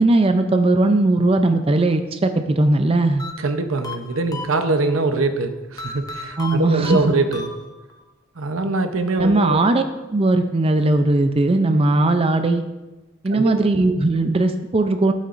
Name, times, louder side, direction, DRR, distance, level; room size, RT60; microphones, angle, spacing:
voice 1, 0.0-3.2 6.4-7.1 9.2-9.8 10.1-12.6 13.2-15.1, right 2 dB, 30° right, 7 dB, 0.4 m, -18 dB
sound 1, 3.2-5.0 5.8-8.0, left 3 dB, 20° left, 0.6 m, -35 dB
voice 2, 3.4-7.5 8.4-9.6 13.3-13.5, right 3 dB, 85° right, 8 dB, 0.8 m, -23 dB
12.5 x 8.2 x 2.6 m, 1.1 s
head